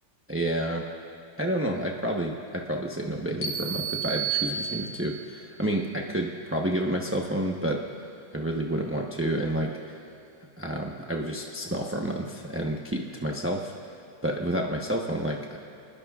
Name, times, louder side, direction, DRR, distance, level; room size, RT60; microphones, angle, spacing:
voice 1, 0.3-0.8 1.4-7.8 8.3-10.0 10.6-13.7 14.2-15.6, right 1 dB, 15° right, 0 dB, 0.4 m, -29 dB
sound 1, 3.4-5.3, right 7 dB, 70° left, 2.0 m, -31 dB
28.0 x 20.5 x 2.4 m, 2.7 s
omnidirectional pair, 2.0 m